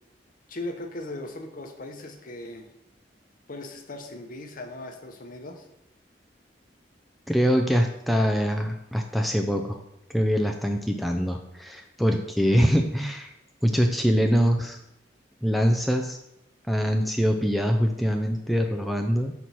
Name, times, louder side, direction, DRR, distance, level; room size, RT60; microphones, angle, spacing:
voice 1, 0.5-2.7 3.5-5.7, left 2 dB, 50° left, 5 dB, 0.8 m, -38 dB
voice 2, 7.3-9.8 10.1-13.3 13.6-14.8 15.4-16.2 16.7-19.3, equal, ahead, 3 dB, 0.3 m, -23 dB
5.9 x 4.5 x 4.1 m, 0.85 s
head